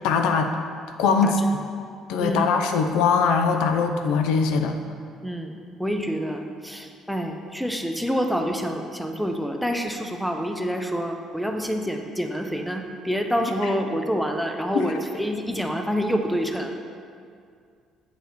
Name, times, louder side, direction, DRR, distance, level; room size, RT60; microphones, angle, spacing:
voice 1, 0.0-0.5 1.0-1.4 2.1-4.8 14.7-14.9, left 5 dB, 85° left, 6 dB, 0.5 m, -21 dB
voice 2, 2.2-2.6 5.2-16.9, equal, ahead, 4 dB, 0.6 m, -27 dB
7.9 x 4.7 x 4.1 m, 2.3 s
cardioid pair, 110°, 0 cm